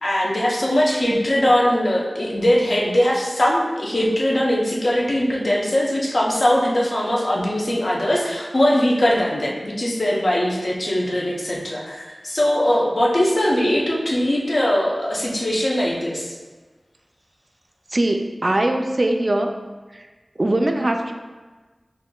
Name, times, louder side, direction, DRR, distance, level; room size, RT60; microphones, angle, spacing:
voice 1, 0.0-16.4, left 1 dB, 65° left, -4 dB, 0.7 m, -20 dB
voice 2, 17.9-19.6 19.9-20.1 20.4-21.1, right 1 dB, 50° right, 4 dB, 0.3 m, -21 dB
5.5 x 2.5 x 2.3 m, 1.3 s
wide cardioid pair, 50°, 0 cm